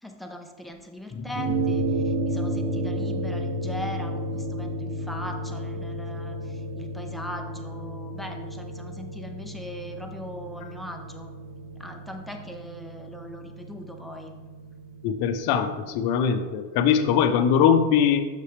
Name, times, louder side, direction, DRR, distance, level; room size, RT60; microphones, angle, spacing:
voice 1, 0.0-11.3 11.8-14.3, equal, ahead, 3 dB, 0.6 m, -40 dB
sound 1, 1.1-10.5, left 5 dB, 25° left, 1.1 m, -43 dB
sound 2, 1.4-15.9, right 1 dB, 65° right, 1.6 m, -32 dB
voice 2, 15.0-18.2, left 7 dB, 55° left, 8 dB, 0.8 m, -21 dB
6.7 x 5.9 x 3.2 m, 1.4 s
supercardioid pair, 110°, 44 cm